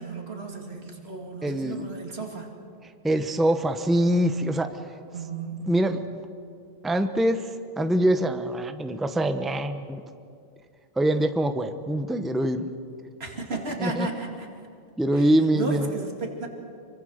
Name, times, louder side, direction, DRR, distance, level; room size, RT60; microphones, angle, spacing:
voice 1, 0.0-2.5 5.1-5.7 13.2-14.7 15.1-16.5, right 3 dB, 80° right, 2 dB, 2.8 m, -34 dB
voice 2, 1.4-1.9 3.0-4.8 5.7-6.0 6.8-10.0 11.0-12.7 13.8-14.1 15.0-15.9, right 1 dB, ahead, 8 dB, 0.8 m, -24 dB
26.0 x 23.5 x 6.5 m, 2.4 s
omnidirectional pair, 1.0 m